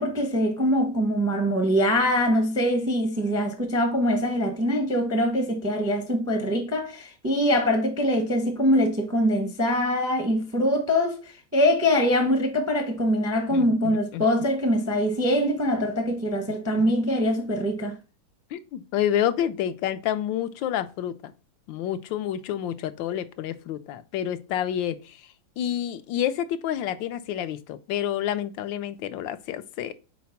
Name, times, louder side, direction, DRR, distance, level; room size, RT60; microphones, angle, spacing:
voice 1, 0.0-18.0, equal, 15° right, 0.5 m, -23 dB
voice 2, 13.5-14.3 16.7-16.9 18.5-21.3 21.7-25.2 25.6-29.9, left 10 dB, 80° left, 1.3 m, -29 dB
4.7 x 4.2 x 5.7 m
omnidirectional pair, 2.1 m